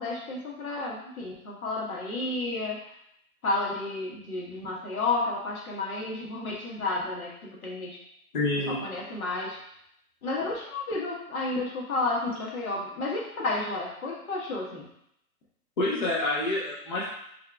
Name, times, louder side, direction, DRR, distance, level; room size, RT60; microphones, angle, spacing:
voice 1, 0.0-2.9 3.4-8.0 8.7-9.6 10.2-14.9, left 2 dB, 70° left, -3 dB, 1.5 m, -31 dB
voice 2, 8.3-8.8 15.8-17.1, left 2 dB, 35° left, -6 dB, 0.8 m, -27 dB
3.5 x 3.4 x 3.5 m, 0.74 s
hypercardioid pair, 175°, 44 cm